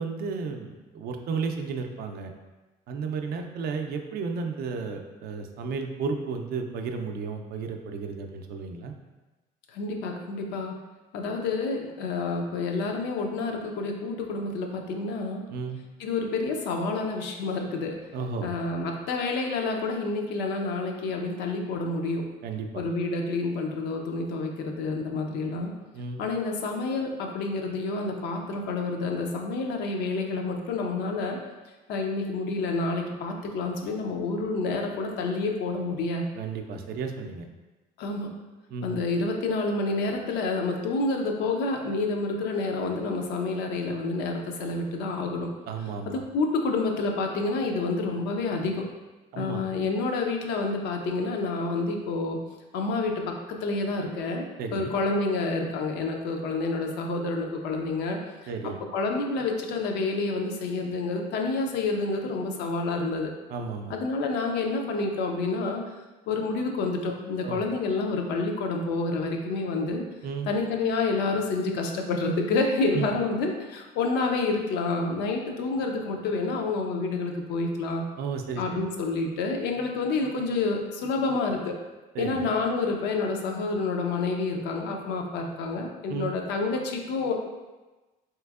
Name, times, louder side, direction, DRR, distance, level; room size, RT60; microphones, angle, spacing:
voice 1, 0.0-2.3 2.9-8.9 15.5-15.8 18.1-18.5 22.4-22.8 25.9-26.2 36.4-37.5 38.7-39.0 45.7-46.2 49.3-49.6 54.6-54.9 58.5-58.8 63.5-63.9 67.4-67.6 70.2-70.5 72.9-73.1 78.2-78.6 82.1-82.5 86.1-86.3, right 5 dB, 65° right, 5 dB, 0.4 m, -33 dB
voice 2, 9.7-10.8 11.1-15.4 16.0-18.0 18.4-22.2 22.7-25.7 26.2-31.4 31.9-36.3 38.0-38.3 38.8-45.5 46.0-48.8 49.4-52.4 52.7-54.4 54.7-58.2 58.9-63.3 63.9-65.8 66.3-70.0 70.5-78.0 78.6-81.7 82.2-87.3, left 3 dB, 85° left, 2 dB, 0.5 m, -28 dB
3.3 x 2.9 x 2.3 m, 1.2 s
cardioid pair, 110°, 17 cm